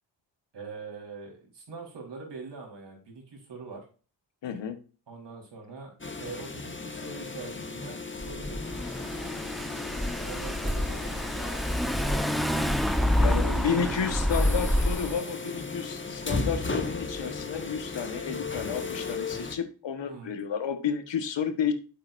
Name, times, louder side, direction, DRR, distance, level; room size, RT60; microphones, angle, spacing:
voice 1, 0.5-3.8 5.1-8.7 10.2-11.0 13.5-13.9 20.0-20.3, right 4 dB, 70° right, -1 dB, 4.3 m, -43 dB
voice 2, 4.4-4.8 13.2-21.7, left 7 dB, 75° left, 9 dB, 1.4 m, -31 dB
sound 1, 6.0-19.6, left 3 dB, 25° left, 1.6 m, -36 dB
Car / Engine, 8.2-15.1, equal, ahead, 1.0 m, -28 dB
8.7 x 7.7 x 2.6 m, 0.36 s
supercardioid pair, 45°, 44 cm